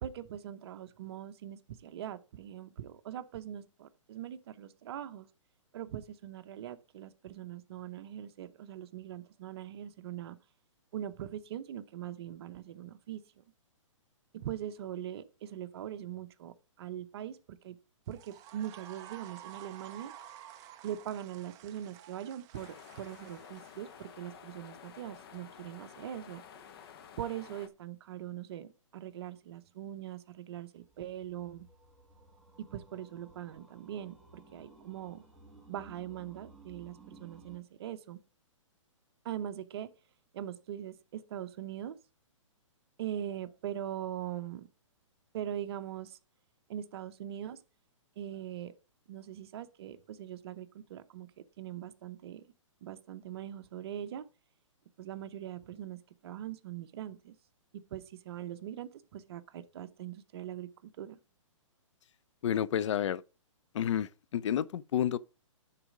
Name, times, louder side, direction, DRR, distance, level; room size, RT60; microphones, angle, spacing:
voice 1, 0.0-5.3 5.7-10.4 10.9-13.2 14.3-17.8 18.1-20.1 20.8-26.4 27.2-31.7 32.6-35.2 35.7-38.2 39.2-39.9 40.3-42.0 43.0-44.7 45.3-46.2 46.7-47.6 48.2-48.7 49.1-52.4 52.8-54.2 55.0-57.4 57.9-61.2, right 11 dB, 50° right, 0.8 m, -41 dB
sound 1, 18.1-24.4, right 11 dB, 20° right, 0.5 m, -52 dB
sound 2, 22.5-27.7, left 8 dB, 45° left, 1.0 m, -52 dB
sound 3, 30.8-37.6, right 3 dB, ahead, 1.4 m, -57 dB
voice 2, 62.4-63.2 63.7-65.2, left 10 dB, 65° left, 0.5 m, -30 dB
9.8 x 4.1 x 4.9 m
hypercardioid pair, 150°, 17 cm